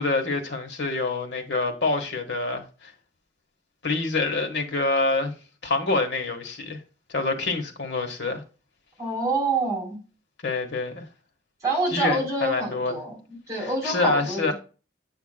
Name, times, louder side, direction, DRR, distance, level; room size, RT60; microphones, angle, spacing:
voice 1, 0.0-2.9 3.8-5.3 5.6-6.8 7.1-8.4 10.4-11.0 11.9-12.9 13.6-14.5, left 3 dB, 75° left, 1.3 m, -26 dB
voice 2, 9.0-10.0 11.6-14.5, right 2 dB, 20° right, 3.9 m, -27 dB
8.6 x 5.7 x 2.2 m
head